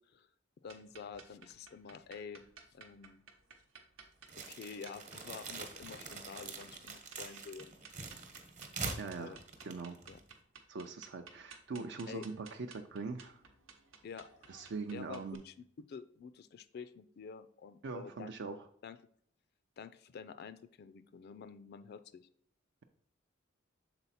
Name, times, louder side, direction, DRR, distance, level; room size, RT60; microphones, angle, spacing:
voice 1, 0.6-2.4 2.7-3.2 4.4-7.8 9.2-9.4 10.1-10.2 12.1-12.2 14.0-14.5 14.9-18.3 18.8-19.0 19.8-22.3, left 6 dB, 55° left, 13 dB, 0.3 m, -48 dB
sound 1, 0.7-15.4, right 5 dB, 85° right, 0.9 m, -57 dB
sound 2, 4.3-10.4, right 4 dB, 40° right, 1.0 m, -44 dB
voice 2, 9.0-9.4 9.6-10.0 10.7-13.4 14.5-15.4 17.8-18.7, right 4 dB, 60° right, 5 dB, 0.4 m, -42 dB
6.9 x 4.0 x 4.1 m, 0.64 s
head